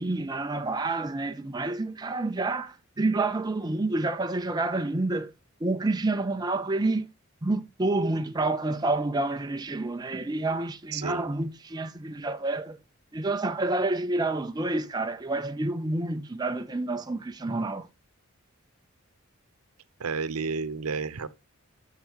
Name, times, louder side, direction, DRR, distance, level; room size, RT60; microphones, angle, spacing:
voice 1, 0.0-5.3 5.6-7.1 7.4-12.8 13.1-17.9, right 2 dB, 20° right, 0.5 m, -28 dB
voice 2, 10.9-11.3 20.0-21.3, right 4 dB, 90° right, 0.7 m, -31 dB
7.0 x 6.5 x 4.6 m
head